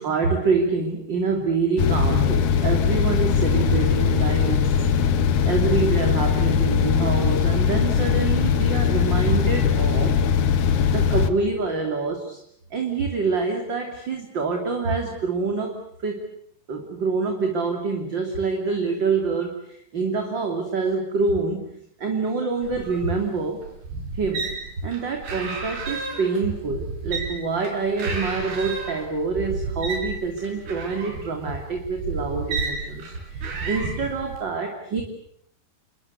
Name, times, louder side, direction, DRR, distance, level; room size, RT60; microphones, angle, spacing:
voice 1, 0.0-4.7 5.4-10.2 10.9-12.4 12.7-16.2 16.7-21.6 22.0-23.6 24.1-24.5 24.8-35.0, right 4 dB, 30° right, 3 dB, 3.1 m, -26 dB
sound 1, 1.8-11.3, left 7 dB, 60° left, 2.5 m, -20 dB
sound 2, 22.6-34.4, right 4 dB, 80° right, 6.7 m, -32 dB
29.5 x 22.0 x 8.3 m, 0.68 s
omnidirectional pair, 4.4 m